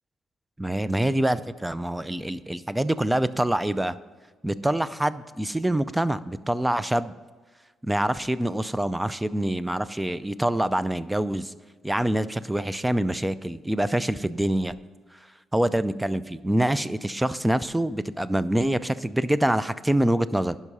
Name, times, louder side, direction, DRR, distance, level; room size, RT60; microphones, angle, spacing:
voice 1, 0.6-4.0 4.4-7.1 7.8-11.5 11.8-14.8 15.5-20.6, right 1 dB, 10° right, 16 dB, 0.4 m, -25 dB
11.0 x 5.5 x 5.4 m, 1.4 s
cardioid pair, 90°, 0 cm